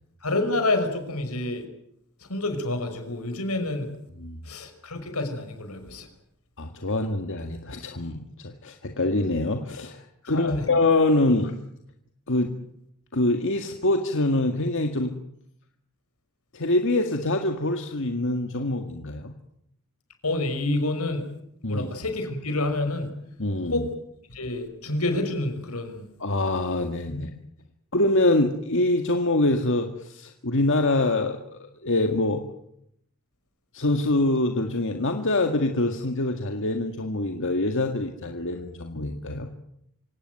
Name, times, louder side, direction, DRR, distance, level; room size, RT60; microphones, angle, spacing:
voice 1, 0.2-1.6 2.3-3.9 4.4-6.1 10.2-10.7 20.2-21.3 21.7-23.1 23.7-23.9 24.3-26.1 27.1-27.2, left 2 dB, 85° left, 7 dB, 5.7 m, -28 dB
voice 2, 6.6-10.0 10.3-11.6 12.3-12.5 13.1-15.1 16.5-19.3 21.6-21.9 23.4-23.8 26.2-27.3 27.9-32.4 33.7-39.5, left 2 dB, 60° left, 4 dB, 1.9 m, -25 dB
26.0 x 17.5 x 9.3 m, 0.75 s
head